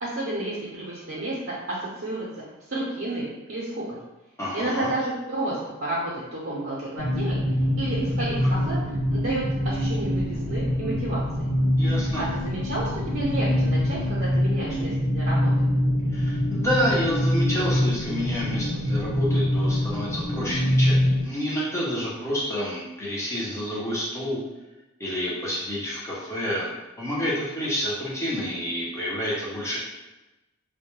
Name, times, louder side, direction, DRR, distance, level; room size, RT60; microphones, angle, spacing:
voice 1, 0.0-2.3 2.7-4.0 4.5-7.4 7.8-8.8 9.1-11.2 12.2-15.5, right 1 dB, 50° right, -8 dB, 0.6 m, -31 dB
voice 2, 4.4-4.9 11.8-12.2 16.1-24.4 25.0-26.7 27.0-29.8, equal, 15° left, -7 dB, 0.6 m, -29 dB
sound 1, 7.0-21.2, equal, 70° left, 0.5 m, -24 dB
2.2 x 2.1 x 3.0 m, 1.0 s
head